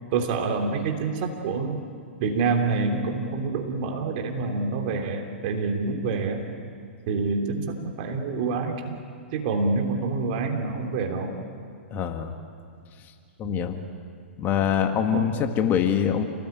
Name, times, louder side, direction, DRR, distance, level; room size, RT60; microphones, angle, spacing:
voice 1, 0.1-1.8 2.2-6.4 7.1-9.0 9.3-11.3 13.4-13.7 15.1-15.3, right 4 dB, 45° right, 3 dB, 3.4 m, -27 dB
voice 2, 11.9-12.3 13.4-13.8 14.4-16.2, left 8 dB, 30° left, 6 dB, 1.9 m, -24 dB
29.0 x 19.0 x 9.1 m, 2.3 s
figure-of-eight pair, 110°, 7 cm